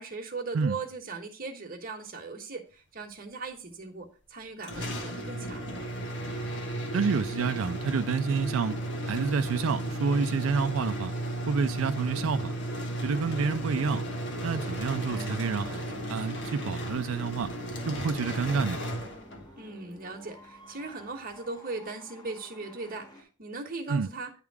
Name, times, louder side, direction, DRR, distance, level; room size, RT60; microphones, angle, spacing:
voice 1, 0.0-5.6 19.6-24.3, right 3 dB, 45° right, 1.3 m, -39 dB
sound 1, 4.6-19.6, right 1 dB, 60° left, 1.3 m, -34 dB
voice 2, 6.9-8.7 9.0-11.1 11.5-12.5 13.0-14.0 14.4-17.5 17.8-18.8 23.9-24.1, right 5 dB, 85° right, 0.4 m, -28 dB
sound 2, 15.1-18.4 18.7-18.8, right 3 dB, 5° right, 1.0 m, -49 dB
sound 3, 17.7-23.2, left 1 dB, 20° left, 1.3 m, -52 dB
9.7 x 3.6 x 4.7 m
head